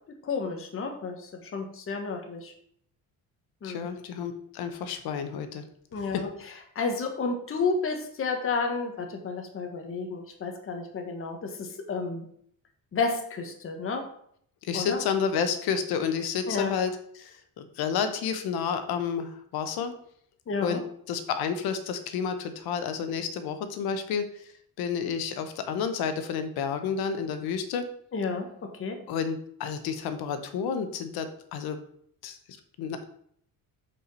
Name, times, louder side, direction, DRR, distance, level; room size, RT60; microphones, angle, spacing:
voice 1, 0.1-2.5 3.6-3.9 5.9-6.3 6.7-12.2 12.9-14.1 14.7-15.0 16.5-16.7 20.5-20.8 28.1-29.0, left 4 dB, 35° left, 3 dB, 1.2 m, -31 dB
voice 2, 3.6-5.6 5.9-6.2 14.6-19.9 20.6-20.8 21.1-24.5 24.8-27.9 29.1-31.8 32.2-32.4 32.8-33.1, left 6 dB, 80° left, 9 dB, 1.0 m, -30 dB
5.5 x 4.8 x 5.4 m, 0.66 s
cardioid pair, 125°, 37 cm